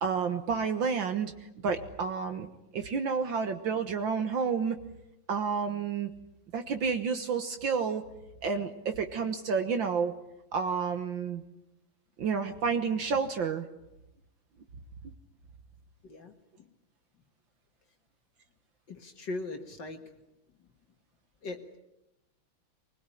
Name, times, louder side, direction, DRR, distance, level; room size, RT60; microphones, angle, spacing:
voice 1, 0.0-1.3 1.6-2.5 2.7-4.8 5.3-6.1 6.5-8.0 8.4-10.1 10.5-11.4 12.2-13.7, right 5 dB, 65° right, 7 dB, 1.9 m, -30 dB
voice 2, 16.0-16.7 18.9-20.1 21.4-21.8, left 2 dB, 55° left, 5 dB, 2.4 m, -40 dB
23.5 x 21.0 x 9.9 m, 0.92 s
omnidirectional pair, 2.3 m